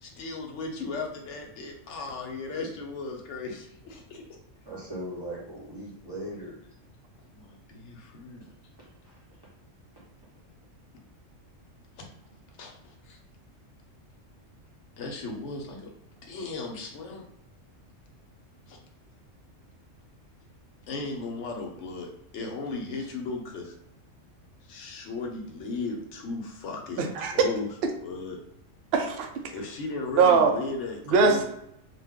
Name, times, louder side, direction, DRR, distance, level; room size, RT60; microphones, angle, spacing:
voice 1, 0.0-4.2 7.2-8.4 12.0-12.1 12.6-13.2 15.0-15.9 16.2-17.2 18.7-18.8 20.9-23.7 24.6-27.7 28.0-28.4 29.5-31.4, left 3 dB, 70° left, 1 dB, 1.0 m, -36 dB
voice 2, 4.6-6.6 8.4-8.5 8.8-9.2, right 1 dB, 20° right, -6 dB, 0.9 m, -39 dB
voice 3, 27.0-27.5 28.9-29.3 30.2-30.5 31.1-31.4, right 5 dB, 65° right, 4 dB, 0.7 m, -21 dB
2.5 x 2.3 x 3.5 m, 0.77 s
omnidirectional pair, 1.3 m